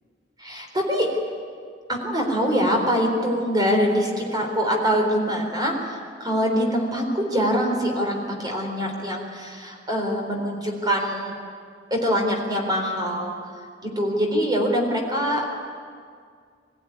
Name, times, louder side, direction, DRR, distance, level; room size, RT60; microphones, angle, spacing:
voice 1, 0.4-1.1 1.9-11.3 11.9-13.3 13.8-15.6, equal, 20° right, 2 dB, 4.0 m, -24 dB
23.0 x 15.5 x 9.8 m, 2.1 s
head